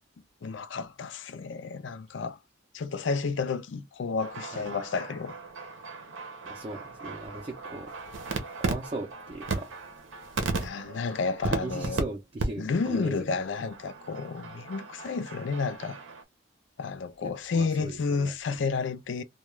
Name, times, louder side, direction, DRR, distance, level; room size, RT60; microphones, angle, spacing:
voice 1, 0.4-2.4 2.7-5.3 10.6-12.0 12.6-16.0 16.8-19.2, left 4 dB, 70° left, 0.4 m, -31 dB
sound 1, 4.2-12.0 12.4-12.5 12.7-13.0 13.4-16.2, right 3 dB, 85° right, 0.7 m, -36 dB
voice 2, 6.4-7.9 8.6-9.7 11.5-13.4 17.2-18.3, right 2 dB, 30° right, 0.4 m, -39 dB
2.3 x 2.2 x 3.0 m
head